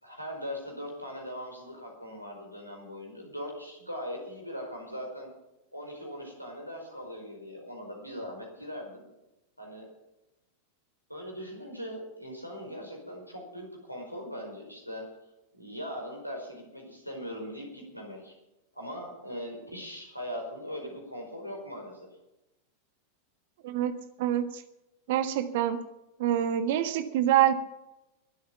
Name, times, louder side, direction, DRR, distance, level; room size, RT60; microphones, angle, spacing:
voice 1, 0.0-5.3 5.7-9.1 9.6-9.9 11.1-15.0 15.5-18.3 18.7-22.1, equal, 90° left, 1 dB, 4.8 m, -40 dB
voice 2, 23.6-24.6 25.1-25.8 26.2-27.5, right 11 dB, 50° right, 10 dB, 1.4 m, -26 dB
21.5 x 8.6 x 5.8 m, 0.96 s
figure-of-eight pair, 90°, 0 cm